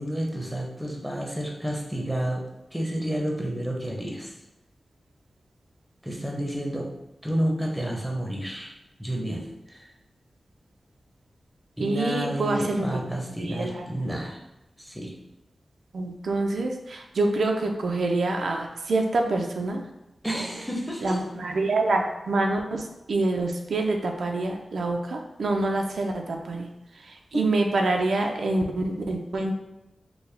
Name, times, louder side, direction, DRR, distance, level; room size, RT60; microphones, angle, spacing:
voice 1, 0.0-2.4 2.7-4.3 6.0-6.9 7.2-8.7 9.0-9.9 11.8-14.4 14.8-15.1 20.2-21.2 27.3-27.4, equal, ahead, -1 dB, 0.7 m, -30 dB
voice 2, 11.8-12.8 13.4-13.9 15.9-19.8 21.0-22.8 23.1-26.7 27.3-29.5, right 2 dB, 90° right, 2 dB, 0.4 m, -26 dB
4.5 x 2.1 x 3.3 m, 0.94 s
wide cardioid pair, 120°, 0 cm